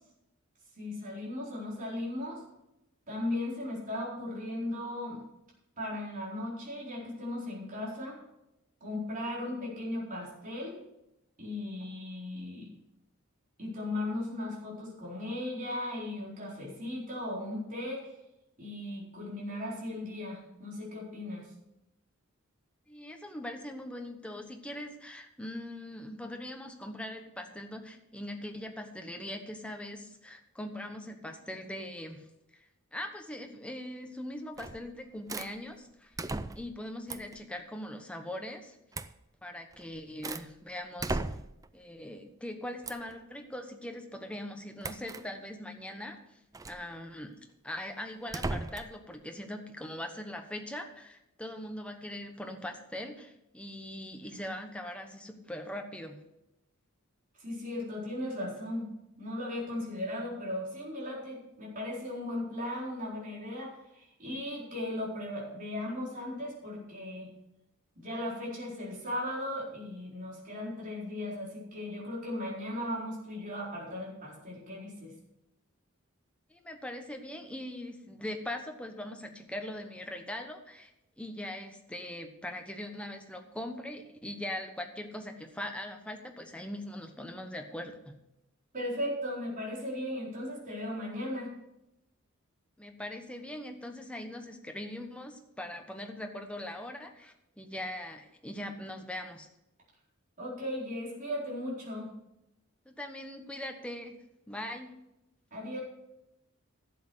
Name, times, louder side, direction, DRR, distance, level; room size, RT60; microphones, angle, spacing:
voice 1, 0.8-2.4 3.1-5.2 5.8-8.2 8.8-10.8 11.4-12.7 13.6-18.1 18.6-21.5 57.4-67.3 68.0-75.1 88.7-91.5 100.4-102.1 105.5-105.8, left 1 dB, 40° right, -5 dB, 4.4 m, -37 dB
voice 2, 22.9-32.3 32.5-36.1 36.5-38.8 39.4-41.2 41.7-46.2 46.7-47.3 47.6-56.2 76.5-80.9 81.2-88.2 92.8-99.5 102.8-104.2 104.5-104.9, left 1 dB, 5° left, 4 dB, 1.1 m, -41 dB
sound 1, 34.6-34.9 35.3-35.5 36.2-36.8 37.1-37.4 38.9-39.2 39.7-40.5 41.0-41.7 42.8-43.1 44.8-45.2 46.5-46.8 48.3-49.0, right 2 dB, 15° right, 0.4 m, -36 dB
11.5 x 7.7 x 6.3 m, 0.88 s
head